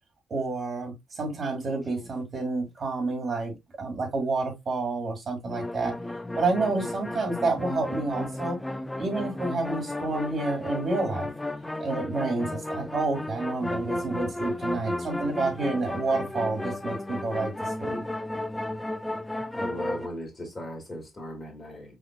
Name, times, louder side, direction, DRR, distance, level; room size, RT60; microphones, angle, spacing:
voice 1, 0.3-5.9 6.4-8.6 9.0-11.3 11.8-18.0, right 3 dB, 45° right, 2.1 m, -29 dB
sound 1, 1.5-2.1 5.4-20.1, left 1 dB, 10° left, 0.4 m, -33 dB
voice 2, 19.5-22.0, left 1 dB, 30° left, 2.3 m, -37 dB
5.1 x 3.7 x 2.2 m
cardioid pair, 90°, 0 cm